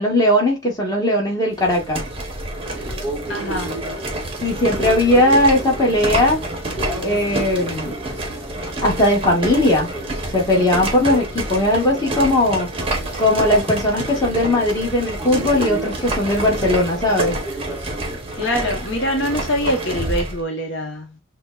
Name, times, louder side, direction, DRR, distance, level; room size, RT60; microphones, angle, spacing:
voice 1, 0.0-2.0 4.4-6.4 7.0-7.9 8.8-9.9 10.3-12.7 13.2-17.4, left 1 dB, 20° left, 1.2 m, -18 dB
sound 1, 1.5-20.4, right 1 dB, 25° right, 0.7 m, -28 dB
sound 2, 2.6-18.2, right 1 dB, 10° right, 1.3 m, -34 dB
voice 2, 3.3-3.7 18.3-21.2, equal, 60° left, 0.8 m, -24 dB
6.1 x 2.1 x 2.3 m
head